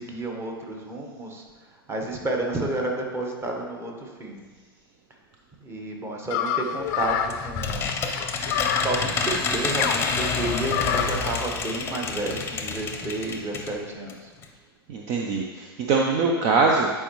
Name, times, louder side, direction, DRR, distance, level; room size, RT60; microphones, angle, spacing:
voice 1, 0.0-1.4 1.9-4.4 5.6-7.9 8.7-14.3, right 2 dB, 20° right, 1 dB, 1.3 m, -31 dB
sound 1, 6.3-11.3, left 9 dB, 45° left, 0.5 m, -29 dB
sound 2, 6.9-13.8 14.1-14.2 14.4-14.5, left 4 dB, 20° left, 0.8 m, -28 dB
voice 2, 14.9-16.9, right 4 dB, 40° right, 1 dB, 0.7 m, -22 dB
10.0 x 4.7 x 3.1 m, 1.4 s
hypercardioid pair, 100°, 13 cm